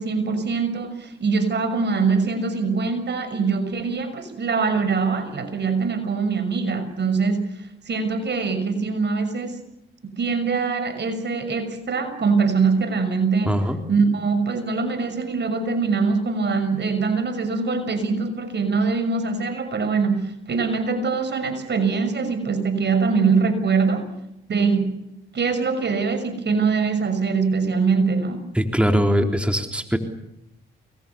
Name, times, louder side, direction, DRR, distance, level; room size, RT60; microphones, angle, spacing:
voice 1, 0.0-7.5 7.9-9.6 10.0-13.6 13.9-24.1 24.5-25.0 25.3-28.4, right 4 dB, 55° right, 10 dB, 6.2 m, -23 dB
voice 2, 13.5-13.8 28.5-30.0, equal, 5° right, 4 dB, 3.8 m, -21 dB
29.5 x 22.0 x 7.1 m, 0.84 s
supercardioid pair, 55°, 21 cm